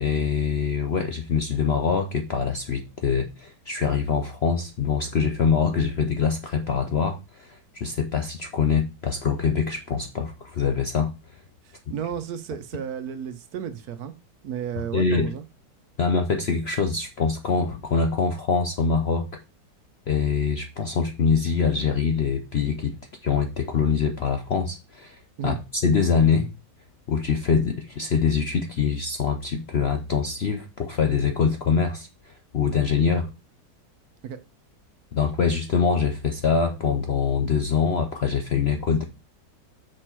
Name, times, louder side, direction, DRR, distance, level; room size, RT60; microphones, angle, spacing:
voice 1, 0.0-11.1 14.9-15.3 16.0-19.4 20.1-22.9 23.2-26.5 27.1-33.3 35.1-39.0, left 6 dB, 60° left, 0.7 m, -24 dB
voice 2, 11.6-14.1 14.4-15.4 25.4-25.6 34.2-34.4, right 8 dB, 65° right, 1.2 m, -33 dB
6.3 x 5.2 x 4.5 m
omnidirectional pair, 1.8 m